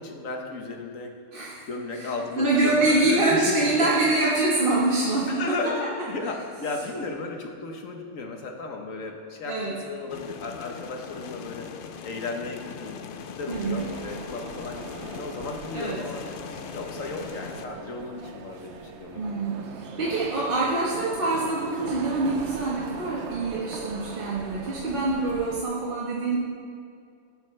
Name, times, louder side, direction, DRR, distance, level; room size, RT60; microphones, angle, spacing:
voice 1, 0.0-1.2 1.7-3.9 5.3-11.7 12.0-16.2 16.7-19.2, left 3 dB, 85° left, 3 dB, 1.6 m, -34 dB
voice 2, 1.3-1.6 2.0-2.1 2.4-5.4 9.5-9.8 13.5-13.8 15.7-16.0 19.1-26.4, right 2 dB, 45° right, -6 dB, 1.5 m, -25 dB
sound 1, 10.1-17.7, left 7 dB, 55° left, 0.6 m, -40 dB
sound 2, 13.5-25.6, right 5 dB, 65° right, 1.0 m, -40 dB
18.0 x 8.9 x 3.3 m, 2.3 s
omnidirectional pair, 1.3 m